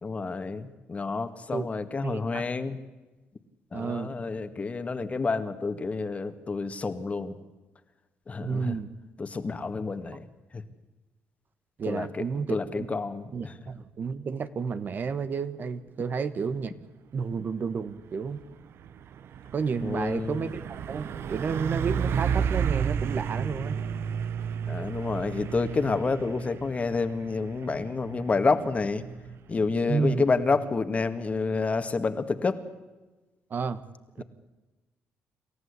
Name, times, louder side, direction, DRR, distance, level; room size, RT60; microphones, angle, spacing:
voice 1, 0.0-2.8 3.7-7.4 8.3-8.7 9.2-10.3 10.5-10.6 11.9-12.2 12.5-13.5 19.8-20.4 24.7-29.0 29.5-32.6 34.2-34.3, left 4 dB, 30° left, 10 dB, 1.9 m, -29 dB
voice 2, 2.0-2.5 3.7-4.1 8.4-8.9 11.8-12.9 13.3-16.7 17.1-18.4 19.5-23.8 29.9-30.2 33.5-33.8 34.2-34.3, right 5 dB, 45° right, 12 dB, 1.3 m, -31 dB
Truck, 17.7-32.0, right 7 dB, 65° right, 1.0 m, -33 dB
28.0 x 14.0 x 8.3 m, 1.2 s
cardioid pair, 100°, 4 cm